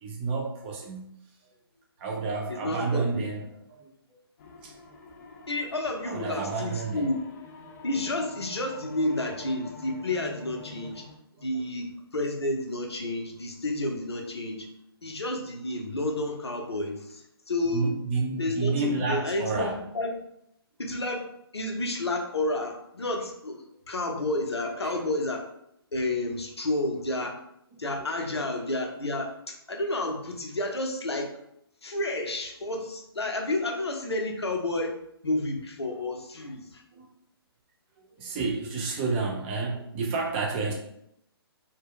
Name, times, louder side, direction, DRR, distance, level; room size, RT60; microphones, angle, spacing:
voice 1, 0.0-1.1 2.0-3.9 4.6-4.8 6.1-7.0 17.7-19.8 24.8-25.0 27.7-27.8 36.9-37.1 38.2-40.7, right 4 dB, 25° right, 0 dB, 0.5 m, -30 dB
voice 2, 2.5-3.2 5.5-7.1 7.8-11.0 11.4-14.7 15.0-17.9 18.4-20.2 20.8-21.3 21.5-25.5 25.9-27.4 27.8-31.3 31.8-34.9 35.2-36.8, left 2 dB, 85° left, 2 dB, 0.6 m, -30 dB
sound 1, 4.4-11.2, left 3 dB, 40° left, 0.4 m, -47 dB
2.2 x 2.0 x 3.6 m, 0.76 s
figure-of-eight pair, 135°, 13 cm